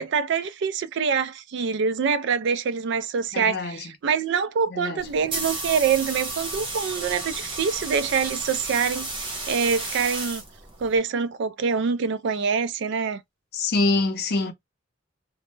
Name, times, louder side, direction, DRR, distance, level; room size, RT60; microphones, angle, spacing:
voice 1, 0.0-10.4 10.8-13.2, right 6 dB, 65° right, 0.3 m, -25 dB
voice 2, 3.3-3.9 4.7-5.0 13.5-14.5, left 3 dB, 55° left, 0.5 m, -25 dB
sound 1, 5.0-11.0, right 2 dB, 25° right, 0.7 m, -33 dB
2.1 x 2.0 x 3.1 m
head